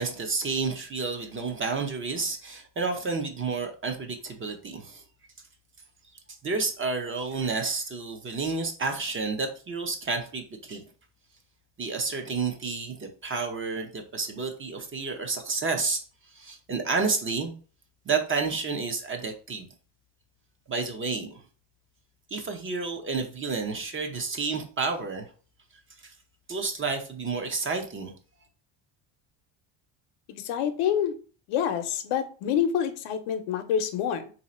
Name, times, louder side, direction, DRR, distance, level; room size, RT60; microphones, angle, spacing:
voice 1, 0.0-5.0 6.4-10.8 11.8-16.0 16.3-17.5 18.1-19.7 20.7-21.4 22.3-25.3 26.0-26.1 26.5-28.1, right 4 dB, 25° right, 5 dB, 0.5 m, -30 dB
voice 2, 30.3-31.1 31.5-34.3, left 9 dB, 80° left, 8 dB, 0.8 m, -27 dB
3.2 x 2.7 x 4.2 m, 0.38 s
cardioid pair, 135°, 49 cm